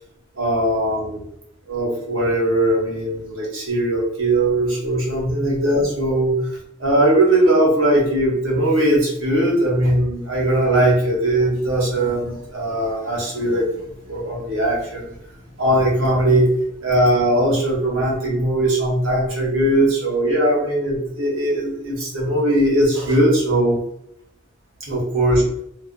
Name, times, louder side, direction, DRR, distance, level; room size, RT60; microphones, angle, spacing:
voice 1, 0.4-1.2 1.7-6.4 6.8-23.8 24.8-25.4, right 1 dB, 90° right, -3 dB, 1.0 m, -19 dB
2.4 x 2.3 x 2.4 m, 0.75 s
head